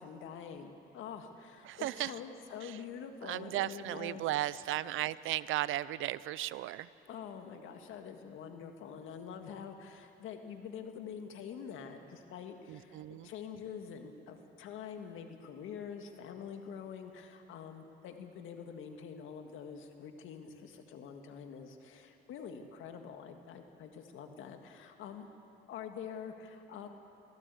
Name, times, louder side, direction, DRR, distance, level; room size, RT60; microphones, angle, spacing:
voice 1, 0.0-4.2 4.8-4.9 7.1-25.3 25.7-26.9, left 7 dB, 85° left, 6 dB, 1.9 m, -46 dB
voice 2, 1.6-2.1 2.6-2.8 3.2-6.9 12.7-13.3, right 15 dB, 85° right, 18 dB, 0.6 m, -35 dB
24.5 x 16.0 x 8.4 m, 2.8 s
cardioid pair, 90°, 20 cm